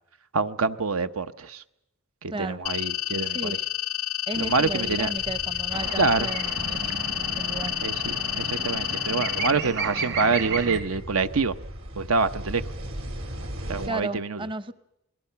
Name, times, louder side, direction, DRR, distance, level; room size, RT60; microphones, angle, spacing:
voice 1, 0.3-1.6 2.2-3.6 4.4-5.1 6.0-6.3 7.8-11.5 12.0-12.6 13.7-14.5, right 4 dB, 85° right, 0.9 m, -26 dB
sound 1, 2.7-9.5, left 14 dB, 85° left, 0.7 m, -30 dB
voice 2, 3.3-3.6 4.3-6.8 7.4-7.7 13.9-14.7, right 2 dB, 25° right, 0.7 m, -34 dB
sound 2, 4.3-13.9, equal, 70° right, 4.0 m, -39 dB
sound 3, 5.7-10.8, right 4 dB, 55° right, 1.5 m, -33 dB
28.5 x 20.5 x 5.8 m
head